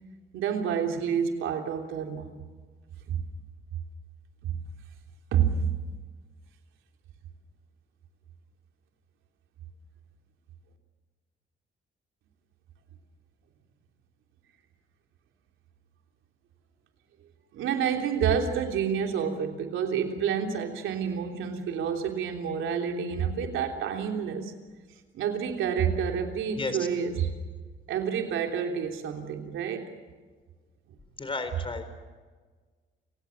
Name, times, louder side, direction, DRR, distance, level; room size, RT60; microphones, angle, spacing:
voice 1, 0.3-2.3 3.1-3.2 4.4-4.5 5.3-5.8 17.5-24.5 25.1-27.3 27.9-29.9, right 7 dB, 85° right, 4 dB, 3.4 m, -28 dB
voice 2, 31.2-32.0, left 3 dB, 25° left, 9 dB, 4.2 m, -33 dB
29.0 x 17.5 x 7.2 m, 1.4 s
cardioid pair, 90°, 20 cm